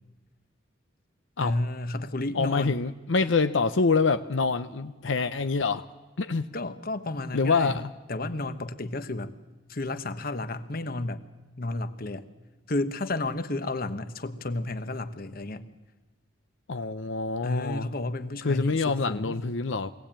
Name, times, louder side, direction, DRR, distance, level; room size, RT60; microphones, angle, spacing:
voice 1, 1.4-2.8 6.5-7.8 8.1-9.4 9.7-11.2 11.6-12.3 12.7-15.6 17.4-19.4, left 2 dB, 50° left, 11 dB, 1.1 m, -32 dB
voice 2, 2.3-5.8 6.2-6.5 7.3-7.9 16.7-17.9 18.4-19.9, left 4 dB, 85° left, 10 dB, 0.7 m, -26 dB
23.5 x 17.5 x 8.9 m, 1.1 s
head